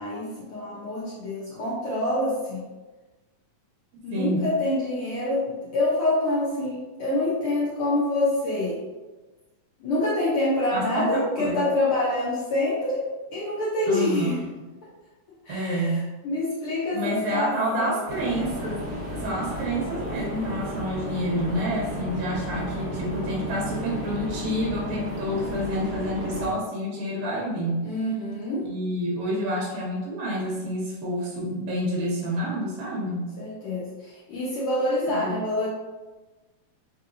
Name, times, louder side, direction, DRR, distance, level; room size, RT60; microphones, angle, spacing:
voice 1, 0.0-2.6 4.0-8.8 9.8-14.4 15.4-16.0 16.2-18.0 27.8-28.7 33.4-35.7, left 1 dB, 80° left, -7 dB, 1.2 m, -26 dB
voice 2, 4.1-4.5 10.7-11.6 13.9-14.3 15.5-16.1 16.9-27.9 28.6-33.3 35.1-35.3, equal, 75° right, -4 dB, 1.8 m, -28 dB
sound 1, 18.1-26.5, equal, 45° right, 0.9 m, -33 dB
4.5 x 2.8 x 2.5 m, 1.2 s
omnidirectional pair, 3.4 m